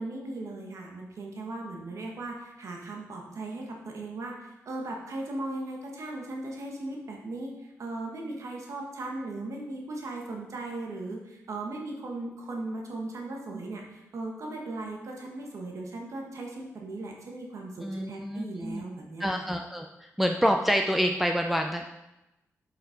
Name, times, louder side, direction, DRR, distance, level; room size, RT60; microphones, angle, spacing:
voice 1, 0.0-19.5, right 2 dB, 65° right, 0 dB, 1.5 m, -37 dB
voice 2, 17.8-18.8 19.2-19.9 20.2-21.9, equal, 5° right, 3 dB, 0.6 m, -27 dB
7.2 x 5.8 x 5.1 m, 0.94 s
cardioid pair, 65°, 6 cm